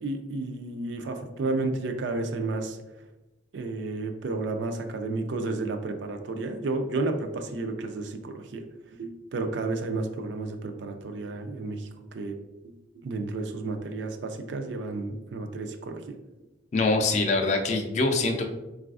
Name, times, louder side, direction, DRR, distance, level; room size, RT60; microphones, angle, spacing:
voice 1, 0.0-2.8 3.5-8.6 9.0-12.4 12.6-12.7 13.0-16.2, right 3 dB, 70° right, 5 dB, 0.4 m, -32 dB
voice 2, 16.7-18.4, left 3 dB, 35° left, 4 dB, 0.3 m, -24 dB
3.9 x 2.4 x 2.4 m, 1.0 s
head